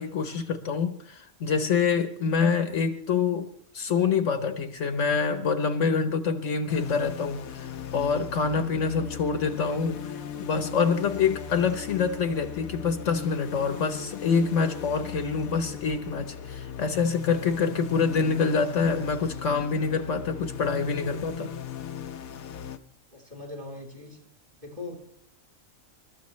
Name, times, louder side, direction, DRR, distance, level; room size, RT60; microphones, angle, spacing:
voice 1, 0.0-3.5 3.7-10.0 10.4-21.5, left 5 dB, 65° left, 9 dB, 1.3 m, -26 dB
sound 1, 6.7-22.8, left 8 dB, 85° left, 1.2 m, -38 dB
voice 2, 23.1-24.2 24.6-24.9, left 2 dB, 30° right, 0 dB, 4.0 m, -40 dB
28.0 x 13.5 x 3.2 m, 0.66 s
omnidirectional pair, 1.4 m